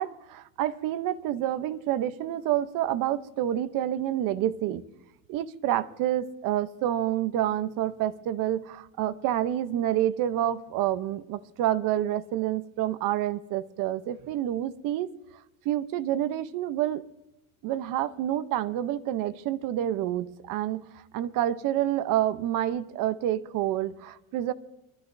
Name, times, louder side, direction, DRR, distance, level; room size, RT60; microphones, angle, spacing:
voice 1, 0.0-4.8 5.3-15.1 15.6-17.0 17.6-24.5, right 12 dB, 55° right, 12 dB, 0.8 m, -28 dB
25.5 x 13.0 x 2.7 m, 0.94 s
cardioid pair, 150°, 39 cm